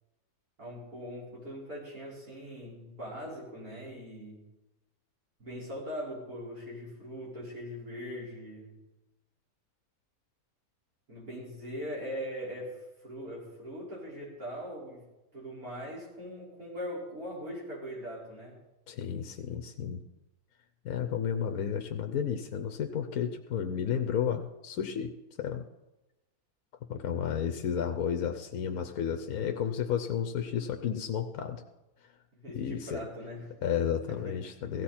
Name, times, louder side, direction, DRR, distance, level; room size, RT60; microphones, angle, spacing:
voice 1, 0.6-4.4 5.4-8.7 11.1-15.0 15.3-18.6 32.3-33.5 34.1-34.3, equal, 70° right, -6 dB, 5.5 m, -41 dB
voice 2, 18.9-20.0 20.8-25.6 26.9-31.6 32.5-33.0 33.6-34.8, left 8 dB, 70° left, 6 dB, 1.2 m, -32 dB
16.5 x 15.0 x 4.3 m, 1.0 s
omnidirectional pair, 1.6 m